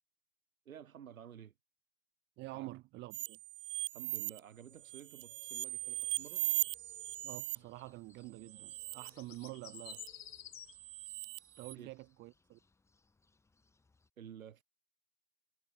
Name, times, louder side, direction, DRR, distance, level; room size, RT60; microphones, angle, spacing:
voice 1, 0.6-1.5 2.5-2.7 3.9-6.5 11.8-11.9 14.2-14.6, right 9 dB, 85° right, 1.2 m, -52 dB
voice 2, 2.4-3.4 7.2-10.0 11.6-12.6, right 19 dB, 25° right, 2.7 m, -48 dB
sound 1, 3.1-4.4 4.8-7.6 8.5-9.1 9.4-10.1 10.7-11.7, right 15 dB, 40° right, 0.6 m, -39 dB
sound 2, 4.6-6.2 6.4-7.3 7.6-7.9 8.2-10.7, left 10 dB, 65° left, 2.2 m, -54 dB
sound 3, 5.5-14.1, left 3 dB, 5° left, 6.5 m, -72 dB
hypercardioid pair, 140°, 40 cm